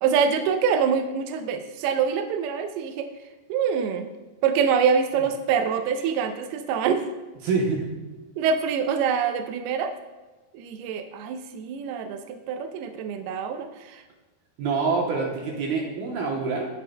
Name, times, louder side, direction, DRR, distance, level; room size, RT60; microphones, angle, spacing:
voice 1, 0.0-3.1 3.5-4.1 4.4-7.1 8.4-9.9 10.5-14.0, right 6 dB, 90° right, 6 dB, 2.2 m, -25 dB
voice 2, 7.4-7.8 14.6-16.7, right 4 dB, 70° right, -1 dB, 2.4 m, -26 dB
16.5 x 5.4 x 2.2 m, 1.2 s
omnidirectional pair, 5.2 m